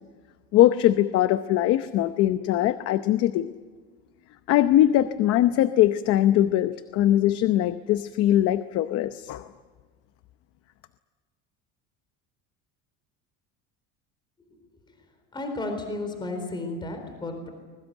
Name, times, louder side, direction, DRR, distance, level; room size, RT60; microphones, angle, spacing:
voice 1, 0.5-3.5 4.5-9.5, left 13 dB, 50° left, 11 dB, 0.8 m, -21 dB
voice 2, 15.3-17.5, left 2 dB, 15° left, 5 dB, 4.0 m, -33 dB
25.0 x 22.0 x 9.1 m, 1.4 s
cardioid pair, 175°, 32 cm